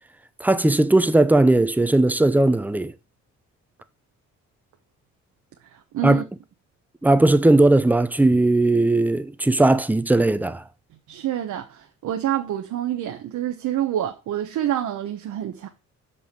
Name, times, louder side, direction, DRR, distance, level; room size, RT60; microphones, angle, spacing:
voice 1, 0.4-2.9 6.0-6.2 7.0-10.6, right 2 dB, 5° right, 0.7 m, -18 dB
voice 2, 5.6-6.2 11.1-15.7, right 11 dB, 75° right, 1.1 m, -27 dB
5.6 x 5.6 x 6.8 m
cardioid pair, 90°, 30 cm